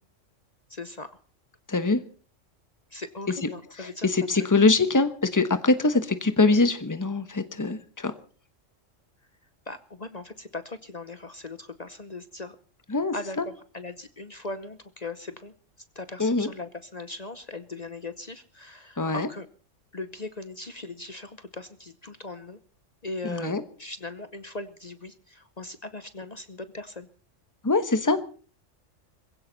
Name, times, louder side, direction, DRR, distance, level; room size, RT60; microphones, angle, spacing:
voice 1, 0.7-1.2 2.9-4.1 4.3-4.6 9.7-12.6 13.1-15.5 15.9-19.5 19.9-22.6 23.0-27.1, left 3 dB, 35° left, 11 dB, 0.8 m, -39 dB
voice 2, 1.7-2.0 3.8-8.1 12.9-13.4 16.2-16.5 19.0-19.3 23.2-23.6 27.6-28.2, left 3 dB, 15° left, 10 dB, 1.1 m, -23 dB
21.5 x 16.0 x 4.1 m, 0.40 s
omnidirectional pair, 1.3 m